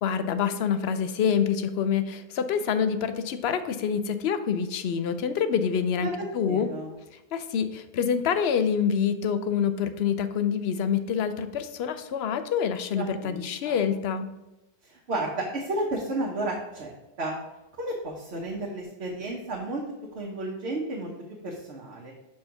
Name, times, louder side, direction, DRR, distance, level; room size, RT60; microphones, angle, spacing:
voice 1, 0.0-6.7 7.3-14.3, left 7 dB, 70° left, 10 dB, 0.8 m, -26 dB
voice 2, 6.0-6.9 13.0-13.9 14.8-16.9 17.2-17.4 17.8-19.8 20.1-21.1 21.4-22.1, right 2 dB, 75° right, -2 dB, 1.2 m, -32 dB
5.3 x 4.4 x 5.7 m, 0.96 s
omnidirectional pair, 1.1 m